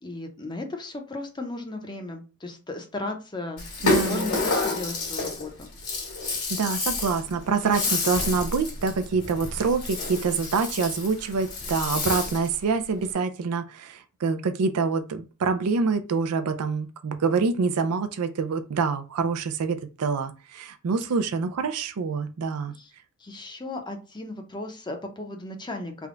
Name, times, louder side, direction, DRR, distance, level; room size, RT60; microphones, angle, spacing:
voice 1, 0.0-5.5 22.7-22.9 23.2-26.1, left 2 dB, 20° left, 0.6 m, -35 dB
Rattle (instrument), 3.6-12.6, left 3 dB, 75° left, 1.7 m, -29 dB
voice 2, 3.8-4.3 6.5-22.7, right 5 dB, 80° right, 0.4 m, -26 dB
3.5 x 2.2 x 3.7 m
head